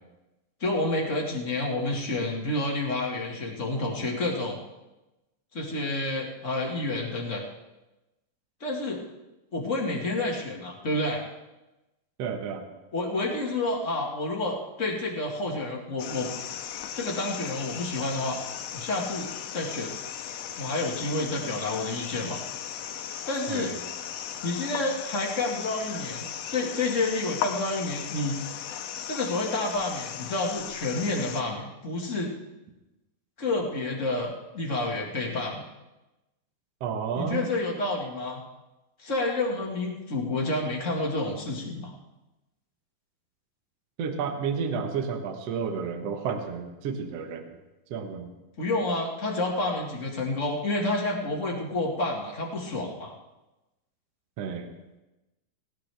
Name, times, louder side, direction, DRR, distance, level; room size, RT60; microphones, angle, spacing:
voice 1, 0.6-4.6 5.5-7.4 8.6-9.0 9.5-11.2 12.9-16.3 16.9-18.4 18.7-19.9 20.6-22.4 23.2-23.7 24.4-28.4 29.1-32.3 33.4-35.6 37.1-38.4 39.0-41.9 48.6-53.1, left 2 dB, 35° left, -1 dB, 1.3 m, -29 dB
voice 2, 12.2-12.6 23.5-23.8 36.8-37.5 44.0-47.6 47.9-48.3 54.4-54.7, right 6 dB, 55° right, 5 dB, 2.0 m, -31 dB
sound 1, 16.0-31.4, left 9 dB, 85° left, 2.8 m, -37 dB
18.5 x 18.0 x 3.5 m, 1.0 s
omnidirectional pair, 4.2 m